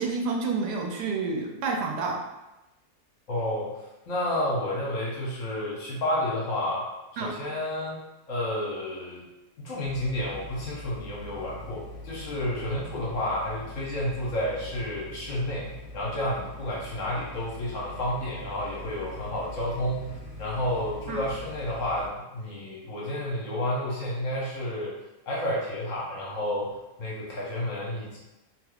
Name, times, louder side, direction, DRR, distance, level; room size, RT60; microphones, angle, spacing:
voice 1, 0.0-2.2 7.2-7.3 21.1-21.2, right 4 dB, 85° right, 1 dB, 1.2 m, -29 dB
voice 2, 3.3-3.8 4.1-6.8 7.2-8.0 8.3-9.2 9.6-15.7 15.9-20.1 20.4-24.9 25.3-28.2, left 1 dB, 60° left, -6 dB, 1.2 m, -30 dB
sound 1, 9.8-22.1, left 1 dB, 35° left, 1.0 m, -43 dB
3.3 x 2.9 x 2.3 m, 0.99 s
omnidirectional pair, 1.7 m